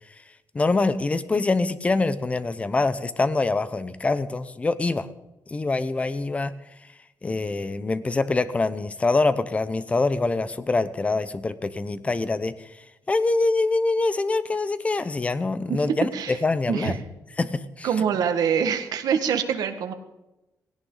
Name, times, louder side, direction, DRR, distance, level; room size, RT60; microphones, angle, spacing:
voice 1, 0.5-5.1 5.5-6.5 7.2-12.7 13.1-17.0 17.4-17.9, left 3 dB, 20° left, 14 dB, 0.8 m, -24 dB
voice 2, 17.8-19.9, right 7 dB, 85° right, 7 dB, 1.7 m, -24 dB
18.0 x 17.5 x 4.0 m, 0.98 s
wide cardioid pair, 155°, 7 cm